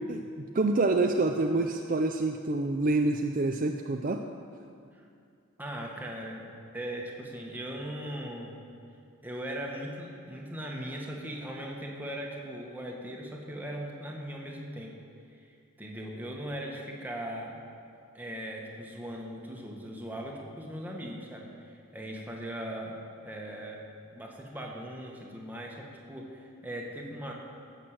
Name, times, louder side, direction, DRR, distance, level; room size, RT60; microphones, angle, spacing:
voice 1, 0.1-4.2, right 2 dB, 40° right, 4 dB, 0.5 m, -27 dB
voice 2, 5.6-6.4 6.7-8.6 9.2-14.9 15.8-17.6 18.1-23.0 23.2-27.3, equal, 10° right, -1 dB, 1.5 m, -39 dB
16.5 x 6.6 x 7.6 m, 2.4 s
head